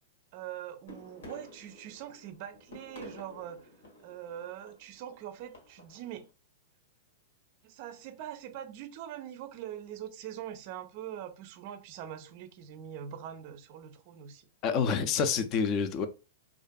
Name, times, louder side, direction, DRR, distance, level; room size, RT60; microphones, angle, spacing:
voice 1, 0.3-3.6 4.0-6.3 7.6-14.5, right 10 dB, 50° right, 0.4 m, -43 dB
sound 1, 0.9-6.2, equal, 80° left, 1.1 m, -51 dB
voice 2, 14.6-16.1, left 6 dB, 40° left, 0.4 m, -27 dB
2.5 x 2.4 x 2.2 m
hypercardioid pair, 125°, 0 cm